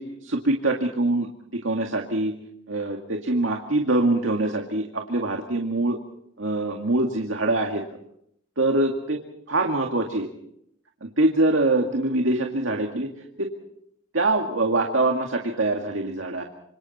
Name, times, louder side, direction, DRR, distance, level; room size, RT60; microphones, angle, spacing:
voice 1, 0.0-2.3 2.7-6.0 6.4-7.8 8.6-9.2 9.5-10.3 11.0-13.1 13.4-13.5 14.1-16.4, right 2 dB, 80° right, 2 dB, 2.1 m, -24 dB
27.0 x 26.5 x 4.2 m, 0.74 s
head